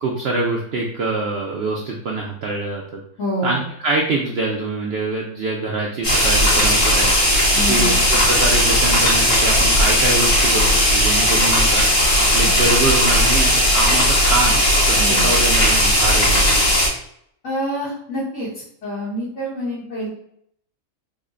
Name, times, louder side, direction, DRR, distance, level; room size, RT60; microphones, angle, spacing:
voice 1, 0.0-3.0 3.4-7.1 7.6-11.8 12.2-16.7, right 2 dB, 65° right, -1 dB, 0.6 m, -24 dB
voice 2, 3.2-3.6 7.5-7.9 12.4-12.6 14.9-15.3 17.4-20.1, equal, 55° left, -9 dB, 1.4 m, -27 dB
sound 1, 6.0-16.9, equal, 85° left, 2.1 m, -16 dB
3.9 x 2.1 x 3.6 m, 0.70 s
omnidirectional pair, 1.6 m